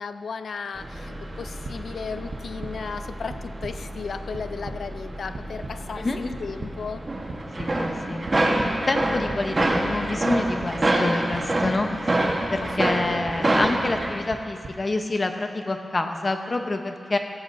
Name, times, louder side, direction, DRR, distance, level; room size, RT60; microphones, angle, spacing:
voice 1, 0.0-7.1 12.6-13.5, left 5 dB, 70° left, 11 dB, 0.5 m, -35 dB
sound 1, 0.8-14.1, right 1 dB, 30° right, 1.3 m, -27 dB
sound 2, 1.6-1.8 2.3-2.7 3.3-3.7 4.1-4.8 5.3-5.7 6.3-6.7 7.3-7.7 8.3-8.7 9.3-9.7 10.3-10.7 11.3-11.7 12.3-12.7 13.3-13.7 14.3-14.7, right 3 dB, 55° right, 1.0 m, -37 dB
voice 2, 7.6-8.3 8.9-12.2 12.5-17.2, left 2 dB, 35° left, 5 dB, 0.8 m, -27 dB
17.0 x 15.5 x 2.7 m, 2.2 s
wide cardioid pair, 125°, 0 cm